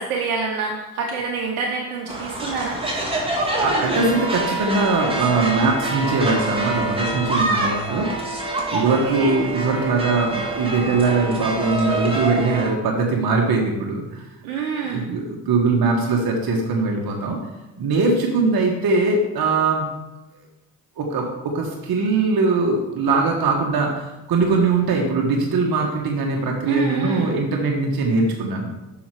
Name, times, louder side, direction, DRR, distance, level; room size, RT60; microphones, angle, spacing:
voice 1, 0.0-2.8 8.8-9.4 14.4-15.1 26.7-27.4, right 5 dB, 90° right, 0 dB, 0.9 m, -27 dB
sound 1, 2.1-12.7, right 2 dB, 10° right, 2.4 m, -26 dB
voice 2, 3.6-8.1 8.7-14.3 14.8-17.4 17.8-19.9 21.0-28.7, right 3 dB, 55° right, 0 dB, 1.4 m, -21 dB
7.0 x 6.2 x 4.8 m, 1.0 s
hypercardioid pair, 50°, 44 cm